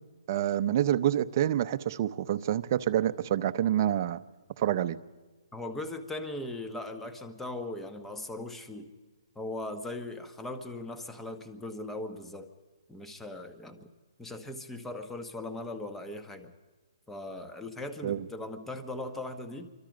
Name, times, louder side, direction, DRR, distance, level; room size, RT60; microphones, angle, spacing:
voice 1, 0.3-4.2 4.6-5.0 18.0-18.2, right 11 dB, 35° right, 11 dB, 0.8 m, -27 dB
voice 2, 5.5-8.9 9.3-12.5 12.9-13.9 14.2-16.5 17.1-19.7, left 2 dB, 5° left, 7 dB, 1.3 m, -39 dB
27.0 x 24.5 x 5.2 m, 1.3 s
hypercardioid pair, 160°, 3 cm